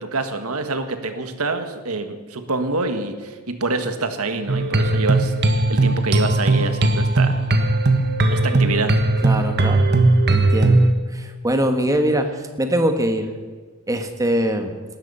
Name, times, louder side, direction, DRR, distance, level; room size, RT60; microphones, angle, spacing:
voice 1, 0.0-5.3 5.7-7.4 8.3-8.9, right 3 dB, 75° right, 8 dB, 1.7 m, -26 dB
sound 1, 4.5-10.9, right 2 dB, 50° right, 1.5 m, -18 dB
voice 2, 9.2-9.9 10.3-12.3 12.6-13.3 13.9-14.7, right 1 dB, 15° right, 6 dB, 1.5 m, -22 dB
18.0 x 13.5 x 5.7 m, 1.4 s
head